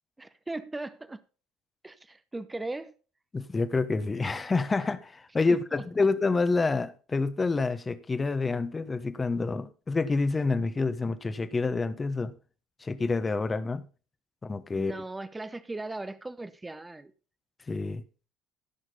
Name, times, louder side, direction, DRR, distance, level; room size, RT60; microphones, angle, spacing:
voice 1, 0.2-1.2 1.8-2.9 5.5-5.8 14.7-17.1, right 2 dB, 15° right, 0.9 m, -38 dB
voice 2, 3.3-12.4 12.8-13.9 14.4-15.0 17.7-18.0, left 3 dB, 25° left, 1.2 m, -28 dB
15.5 x 6.4 x 4.0 m
hypercardioid pair, 60°, 0 cm